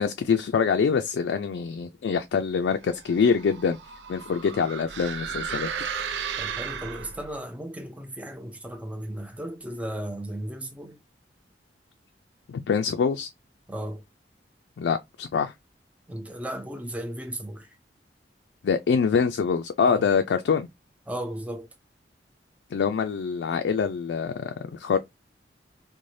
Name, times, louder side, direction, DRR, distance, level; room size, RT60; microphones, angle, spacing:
voice 1, 0.0-3.8 4.1-5.7 12.5-13.3 14.8-15.5 18.6-20.7 22.7-25.0, left 6 dB, 80° left, 0.3 m, -25 dB
sound 1, 2.9-7.4, right 7 dB, 80° right, 0.4 m, -34 dB
voice 2, 6.4-11.0 13.7-14.0 16.1-17.7 19.8-20.1 21.1-21.7, right 1 dB, 10° right, 0.4 m, -35 dB
3.2 x 2.1 x 2.6 m
head